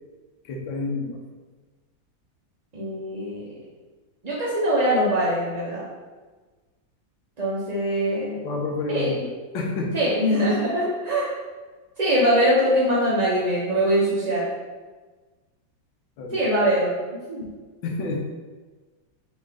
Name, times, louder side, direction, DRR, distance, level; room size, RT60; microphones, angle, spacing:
voice 1, 0.4-1.2 8.4-9.9 16.2-16.4 17.8-18.2, left 3 dB, 85° left, 0 dB, 1.4 m, -29 dB
voice 2, 2.7-3.5 4.2-5.9 7.4-8.4 8.9-9.1 9.9-11.3 12.0-14.5 16.3-17.0 17.3-17.5, equal, 65° right, -7 dB, 0.4 m, -22 dB
4.2 x 3.1 x 3.5 m, 1.3 s
omnidirectional pair, 2.1 m